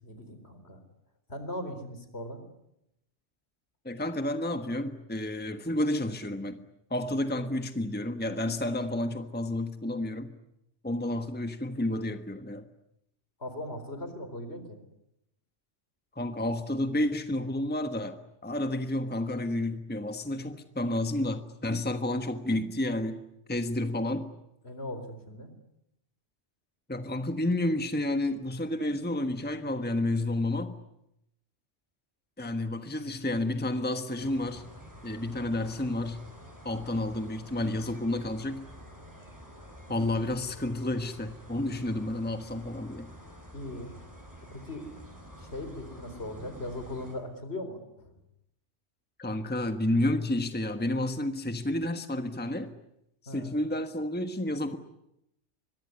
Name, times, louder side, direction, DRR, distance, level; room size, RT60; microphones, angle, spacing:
voice 1, 0.0-0.8 1.3-2.4 13.4-14.8 24.6-25.5 43.5-43.9 44.5-44.9 45.4-48.1 53.3-53.6, left 1 dB, 65° left, 9 dB, 4.5 m, -39 dB
voice 2, 3.8-6.6 6.9-10.3 10.8-12.6 16.1-23.2 23.5-24.3 26.9-30.8 32.4-34.7 35.0-36.2 36.6-38.7 39.9-43.1 49.2-52.7 53.2-54.8, left 1 dB, 10° left, 8 dB, 1.3 m, -30 dB
sound 1, 34.2-47.1, equal, 15° right, 7.9 m, -49 dB
25.5 x 23.0 x 9.8 m, 0.84 s
omnidirectional pair, 1.2 m